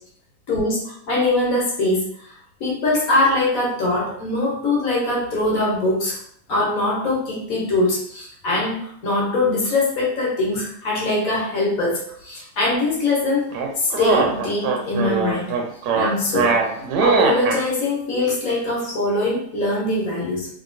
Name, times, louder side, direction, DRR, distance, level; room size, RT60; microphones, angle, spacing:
voice 1, 0.5-2.3 2.6-6.2 6.5-13.4 13.8-15.6 15.9-16.6 17.0-20.5, left 2 dB, 60° left, -3 dB, 1.2 m, -22 dB
sound 1, 13.5-17.6, right 5 dB, 85° right, 1.2 m, -21 dB
2.8 x 2.8 x 2.5 m, 0.67 s
omnidirectional pair, 1.8 m